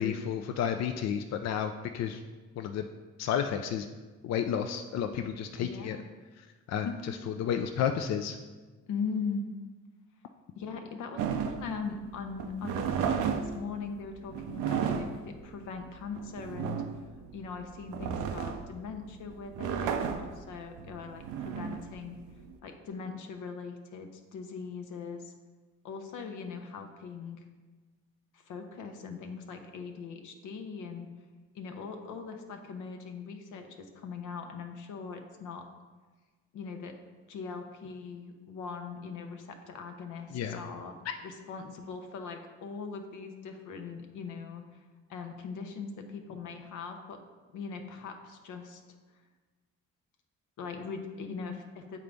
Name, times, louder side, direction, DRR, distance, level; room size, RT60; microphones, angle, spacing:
voice 1, 0.0-2.2 2.6-2.9 3.2-3.9 4.2-6.0 6.7-6.9 7.3-8.4 40.3-40.6 41.1-41.2, left 8 dB, 60° left, 6 dB, 0.4 m, -31 dB
voice 2, 5.6-6.0 6.8-7.0 8.9-9.5 10.6-16.8 17.3-22.2 22.6-25.3 25.8-27.4 28.3-31.1 31.5-35.6 36.5-37.0 37.3-41.0 41.2-44.8 45.1-47.2 47.5-48.8 50.6-52.0, left 5 dB, 85° left, 5 dB, 0.8 m, -40 dB
sound 1, 11.2-22.5, right 7 dB, 90° right, 0.5 m, -34 dB
8.4 x 3.9 x 3.4 m, 1.3 s
cardioid pair, 90°, 30 cm